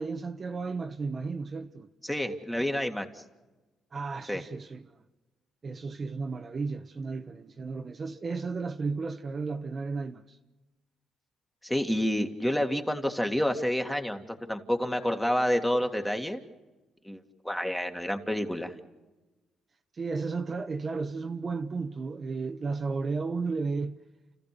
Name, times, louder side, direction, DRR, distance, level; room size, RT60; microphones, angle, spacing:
voice 1, 0.0-1.9 3.9-4.9 5.6-10.4 19.9-24.0, right 4 dB, 40° right, 1.0 m, -33 dB
voice 2, 2.0-3.2 4.3-4.4 11.6-14.2 14.5-16.4 17.0-18.8, equal, 5° left, 2.1 m, -29 dB
30.0 x 15.0 x 6.8 m
cardioid pair, 90°, 0 cm